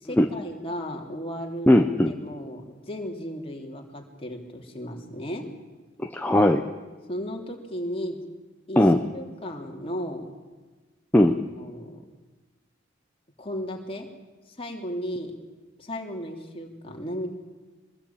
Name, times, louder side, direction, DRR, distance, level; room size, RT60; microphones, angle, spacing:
voice 1, 0.0-1.7 2.1-5.5 7.1-8.2 8.7-8.8 9.1-10.3 11.6-12.0 13.4-14.1 14.6-15.4 15.8-17.3, equal, 30° left, 1 dB, 3.4 m, -35 dB
voice 2, 1.7-2.1 6.0-6.6 8.8-9.0 11.1-11.4, left 1 dB, 10° left, 4 dB, 1.0 m, -18 dB
24.5 x 21.0 x 8.9 m, 1.3 s
head